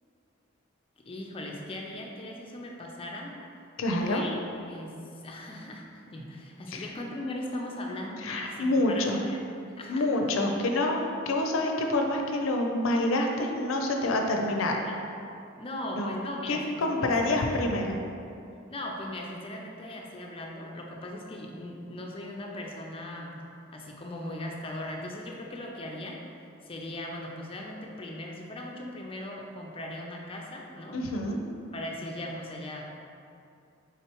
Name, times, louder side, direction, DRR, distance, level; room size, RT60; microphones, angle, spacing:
voice 1, 1.0-3.4 4.0-5.0 5.2-9.5 9.8-10.1 14.3-15.0 15.6-17.8 18.7-23.4 23.7-26.2 26.6-31.0 31.7-32.9, left 1 dB, 30° left, 0 dB, 0.5 m, -39 dB
voice 2, 3.8-4.2 6.7-6.8 8.2-9.2 9.9-11.0 11.3-14.8 15.9-16.1 16.5-18.0 30.9-31.4, left 2 dB, 90° left, 2 dB, 0.5 m, -27 dB
4.5 x 3.7 x 3.0 m, 2.6 s
head